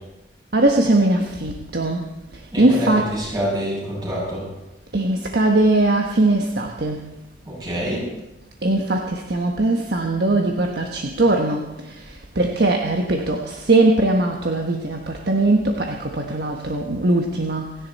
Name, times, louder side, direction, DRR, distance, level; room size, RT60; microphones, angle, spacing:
voice 1, 0.5-2.0 2.6-3.1 4.9-7.1 8.6-17.8, right 2 dB, 65° right, 2 dB, 1.3 m, -20 dB
voice 2, 2.5-4.5 7.5-8.1, equal, 25° right, -6 dB, 7.1 m, -26 dB
27.0 x 10.5 x 4.2 m, 0.98 s
head